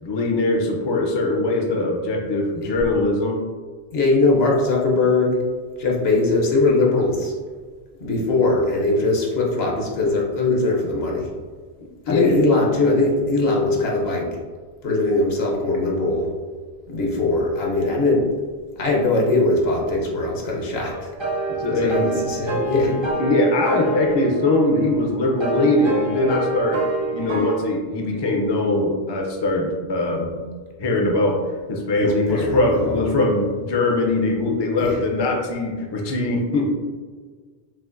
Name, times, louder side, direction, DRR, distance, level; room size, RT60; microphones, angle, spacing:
voice 1, 0.0-3.4 11.8-12.4 21.5-22.1 22.9-26.8 27.1-30.3 30.8-31.4 31.7-36.7, left 2 dB, 35° left, 1 dB, 0.4 m, -21 dB
voice 2, 3.9-5.4 5.8-7.3 8.0-11.3 12.1-14.3 14.8-16.3 16.9-18.3 18.8-21.1 21.7-22.9 31.9-33.0 34.8-35.0, left 2 dB, 70° left, -2 dB, 1.1 m, -21 dB
sound 1, 20.9-27.5, right 2 dB, 35° right, 0.5 m, -27 dB
5.9 x 2.5 x 2.5 m, 1.5 s
omnidirectional pair, 1.1 m